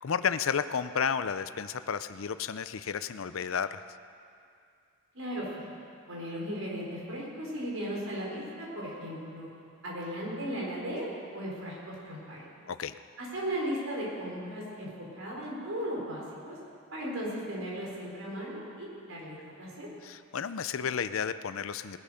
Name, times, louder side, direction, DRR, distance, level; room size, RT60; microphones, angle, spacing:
voice 1, 0.0-3.8 12.7-12.9 20.0-22.0, left 7 dB, 70° left, 13 dB, 0.5 m, -32 dB
voice 2, 5.1-5.5 6.1-9.5 9.8-11.1 11.3-12.5 13.2-16.6 16.9-19.9, equal, 75° right, -4 dB, 4.4 m, -36 dB
19.5 x 12.0 x 5.1 m, 2.3 s
head